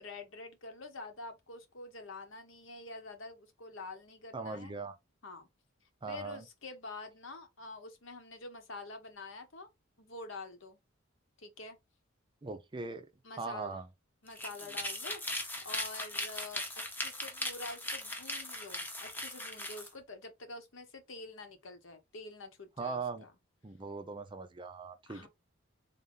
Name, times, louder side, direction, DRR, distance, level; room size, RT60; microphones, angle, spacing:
voice 1, 0.0-4.7 5.2-5.5 6.1-9.7 10.0-10.8 11.4-11.8 13.2-13.8 14.2-16.6 16.9-23.3 25.1-25.3, left 3 dB, 65° left, 1.0 m, -47 dB
voice 2, 4.3-5.0 6.0-6.4 12.4-13.1 13.4-13.9 22.8-23.2 23.6-25.3, right 4 dB, 25° right, 0.5 m, -40 dB
sound 1, 14.3-19.9, left 1 dB, 10° left, 0.7 m, -39 dB
3.7 x 2.7 x 3.6 m
head